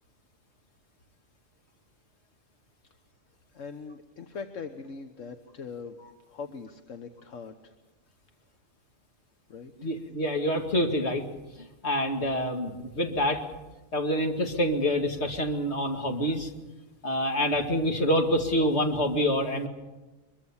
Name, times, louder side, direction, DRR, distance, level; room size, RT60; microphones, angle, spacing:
voice 1, 3.5-6.0 6.3-7.7 9.5-9.9, left 5 dB, 75° left, 6 dB, 1.5 m, -41 dB
voice 2, 9.8-11.3 11.8-13.4 13.9-16.5 17.0-19.7, equal, 55° left, 4 dB, 2.5 m, -26 dB
23.5 x 22.5 x 7.2 m, 1.1 s
omnidirectional pair, 1.3 m